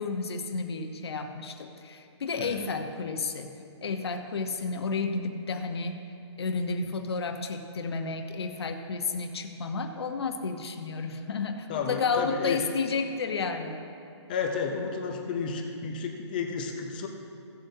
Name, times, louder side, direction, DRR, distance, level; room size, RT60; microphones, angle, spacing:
voice 1, 0.0-3.5 3.8-6.0 6.4-13.8, left 4 dB, 60° left, 5 dB, 1.0 m, -31 dB
voice 2, 11.7-12.6 14.3-17.1, left 5 dB, 20° left, 3 dB, 0.5 m, -32 dB
16.5 x 7.6 x 2.7 m, 2.5 s
hypercardioid pair, 170°, 15 cm